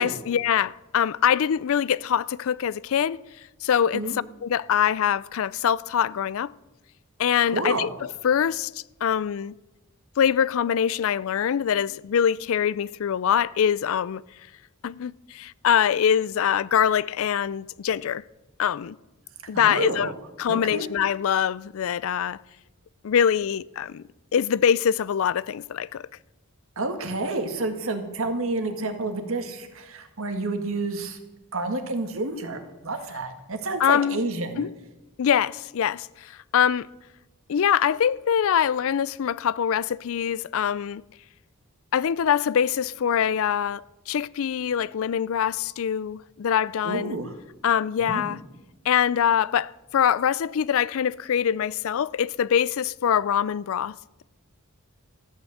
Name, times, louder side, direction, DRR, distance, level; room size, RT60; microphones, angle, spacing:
voice 1, 0.0-3.2 3.6-6.5 7.2-8.7 9.0-9.5 10.2-14.2 14.8-18.2 18.6-19.0 19.5-20.1 20.4-22.4 23.0-24.0 24.3-26.1 33.8-34.2 34.6-34.7 35.2-36.9 37.5-41.0 41.9-47.2 47.6-48.4 48.8-53.9, left 8 dB, 65° left, 0.4 m, -24 dB
voice 2, 7.4-7.9 19.5-20.1 20.5-20.9 26.8-31.2 31.5-34.7 46.8-47.3 48.0-48.4, right 2 dB, 70° right, 1.8 m, -29 dB
14.0 x 8.8 x 7.8 m
head